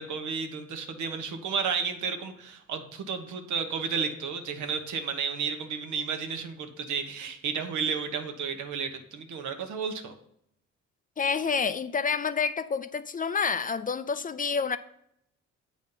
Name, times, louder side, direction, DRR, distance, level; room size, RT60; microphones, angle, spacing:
voice 1, 0.0-10.1, right 6 dB, 75° right, 6 dB, 1.0 m, -32 dB
voice 2, 11.2-14.8, left 5 dB, 30° left, 13 dB, 0.4 m, -28 dB
8.0 x 4.1 x 5.5 m, 0.74 s
cardioid pair, 90°, 30 cm